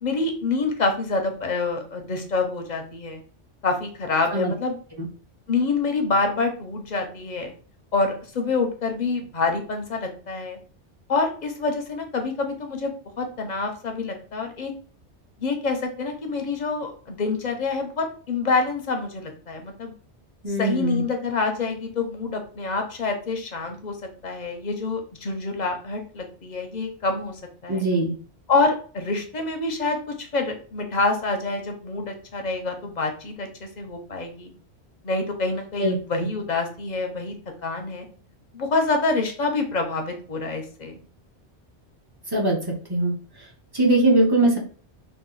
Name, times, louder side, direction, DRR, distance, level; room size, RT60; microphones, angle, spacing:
voice 1, 0.0-3.2 3.6-4.8 5.5-7.5 7.9-10.6 11.1-14.7 15.4-19.9 20.5-24.0 24.2-27.9 28.5-34.5 35.0-37.3 37.6-38.1 38.5-41.0, left 3 dB, 50° left, 4 dB, 0.6 m, -26 dB
voice 2, 20.4-21.0 27.7-28.2 35.8-36.3 42.3-43.1 43.7-44.6, right 2 dB, 25° right, -1 dB, 0.6 m, -21 dB
2.9 x 2.2 x 3.8 m, 0.41 s
omnidirectional pair, 1.2 m